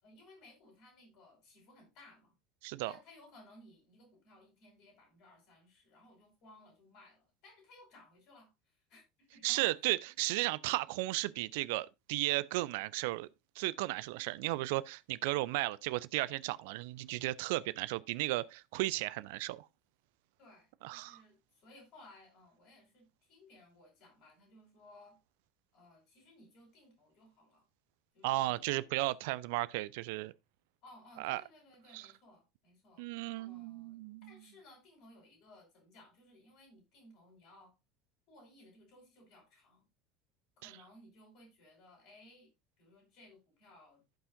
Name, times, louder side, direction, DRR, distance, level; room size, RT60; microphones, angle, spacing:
voice 1, 0.0-2.3 2.9-9.7 20.4-25.2 25.7-27.6 28.1-29.0 30.8-33.1 33.4-37.7 38.3-39.8 40.6-42.5 42.8-44.0, left 2 dB, 50° left, 5.0 m, -60 dB
voice 2, 9.4-13.3 13.6-19.7 20.8-21.2 28.2-30.3 31.2-31.4 31.9-32.1 33.0-34.3 40.6-40.7, right 19 dB, 60° right, 0.4 m, -35 dB
15.5 x 5.5 x 2.5 m
figure-of-eight pair, 70°, 0 cm